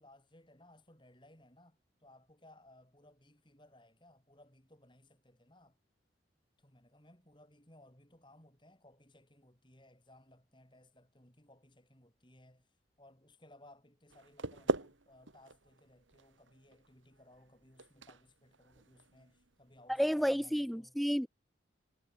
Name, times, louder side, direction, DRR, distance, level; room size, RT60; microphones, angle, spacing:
voice 1, 0.0-5.8 6.6-21.0, left 1 dB, 25° left, 7.0 m, -62 dB
sound 1, 14.1-20.0, right 2 dB, 85° right, 2.2 m, -42 dB
voice 2, 20.0-21.3, equal, ahead, 0.4 m, -31 dB
head